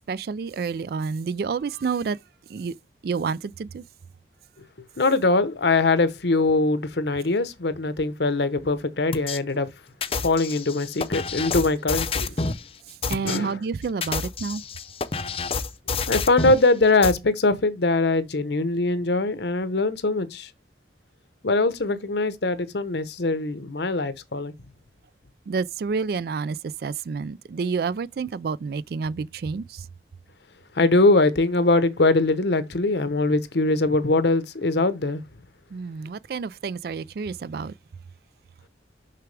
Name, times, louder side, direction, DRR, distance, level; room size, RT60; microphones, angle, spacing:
voice 1, 0.1-2.2 2.5-2.7 3.0-3.8 13.1-14.6 25.5-26.6 26.8-29.8 35.7-37.7, right 5 dB, 55° right, 0.3 m, -29 dB
voice 2, 5.0-9.7 10.2-12.3 13.2-13.6 16.1-20.5 21.4-24.5 30.8-35.2, left 3 dB, 70° left, 0.9 m, -22 dB
sound 1, 9.1-9.4 10.0-12.6 13.0-13.4 13.9-16.6 17.0-17.1, left 4 dB, 30° left, 0.6 m, -28 dB
6.7 x 5.9 x 3.3 m
head